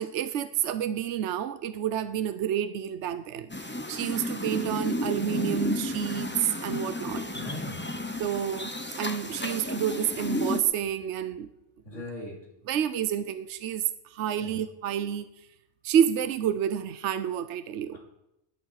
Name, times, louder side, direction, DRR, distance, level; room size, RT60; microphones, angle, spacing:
voice 1, 0.0-7.2 8.2-11.5 11.9-12.0 12.7-15.3 15.8-18.0, right 9 dB, 70° right, 1.0 m, -29 dB
sound 1, 3.5-10.6, left 1 dB, 10° left, 0.8 m, -32 dB
voice 2, 7.3-8.0 11.8-12.5 14.4-14.6 17.9-18.0, left 2 dB, 85° left, 3.6 m, -40 dB
20.0 x 10.5 x 4.8 m
omnidirectional pair, 1.3 m